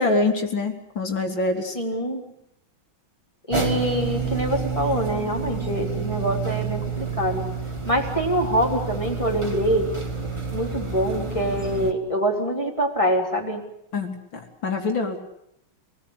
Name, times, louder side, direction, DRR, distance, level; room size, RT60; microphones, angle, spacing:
voice 1, 0.0-1.7 13.9-15.2, left 2 dB, 65° left, 4 dB, 4.1 m, -25 dB
voice 2, 1.7-2.2 3.5-7.5 7.8-9.9 10.5-13.6, equal, 15° left, 0 dB, 3.9 m, -25 dB
sound 1, 3.5-11.9, right 5 dB, 15° right, 2.3 m, -29 dB
28.0 x 19.5 x 8.4 m, 0.77 s
omnidirectional pair, 2.3 m